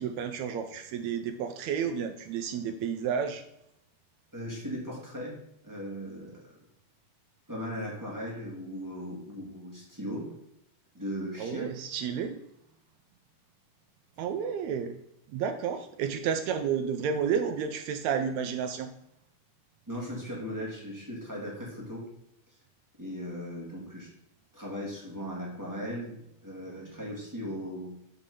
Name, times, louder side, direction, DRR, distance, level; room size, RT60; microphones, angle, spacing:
voice 1, 0.0-3.4 11.4-12.4 14.2-15.0 15.3-18.9, right 7 dB, 85° right, 8 dB, 1.6 m, -31 dB
voice 2, 4.3-5.3 5.6-6.5 7.5-10.3 10.9-11.7 19.9-22.1 23.0-24.1 24.5-26.2 26.4-27.9, equal, 10° right, -5 dB, 1.0 m, -38 dB
5.7 x 4.8 x 5.2 m, 0.79 s
omnidirectional pair, 3.8 m